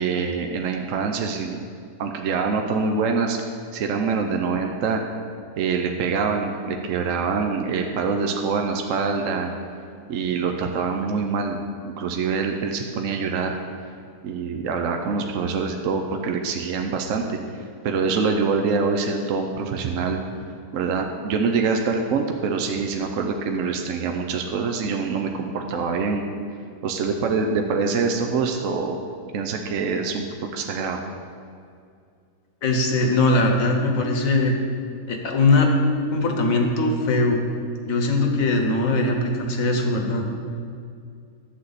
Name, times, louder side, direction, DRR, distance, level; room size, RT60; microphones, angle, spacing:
voice 1, 0.0-1.6 2.0-3.4 3.7-5.0 5.6-9.5 10.1-11.6 11.8-13.6 14.2-17.4 17.8-20.2 20.7-26.2 26.8-29.0 29.3-30.2 30.5-31.0, right 5 dB, 60° right, 3 dB, 0.9 m, -25 dB
voice 2, 32.6-34.6 35.1-35.7 36.1-37.4 37.8-40.2, left 2 dB, 60° left, 2 dB, 1.4 m, -20 dB
11.5 x 8.0 x 4.1 m, 2.3 s
omnidirectional pair, 1.7 m